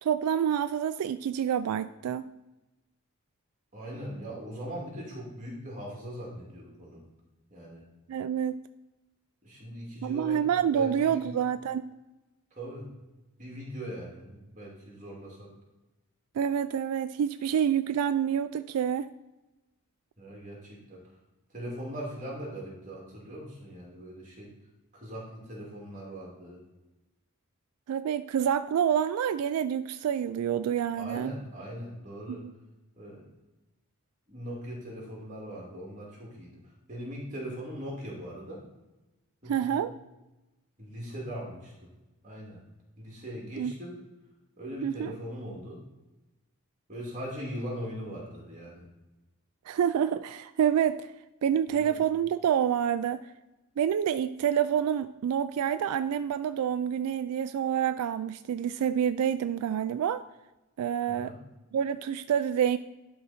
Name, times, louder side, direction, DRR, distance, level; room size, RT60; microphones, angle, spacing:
voice 1, 0.0-2.3 8.1-8.6 10.0-11.9 16.4-19.1 27.9-31.3 32.3-32.5 39.5-39.9 43.6-43.7 44.8-45.1 49.7-51.1 51.4-53.3 53.8-60.2 60.8-61.3 61.7-62.8, right 8 dB, 85° right, 13 dB, 0.3 m, -27 dB
voice 2, 3.7-7.0 7.5-7.9 9.4-11.4 12.5-12.9 13.4-15.6 20.2-21.0 21.5-24.5 24.9-26.6 30.9-32.4 33.0-33.3 34.3-38.6 39.4-39.8 40.8-41.9 42.2-42.6 43.0-44.1 44.6-45.8 46.9-48.9 51.7-52.0 61.1-61.4, equal, 35° right, -3 dB, 2.5 m, -40 dB
11.5 x 3.8 x 4.2 m, 1.0 s
head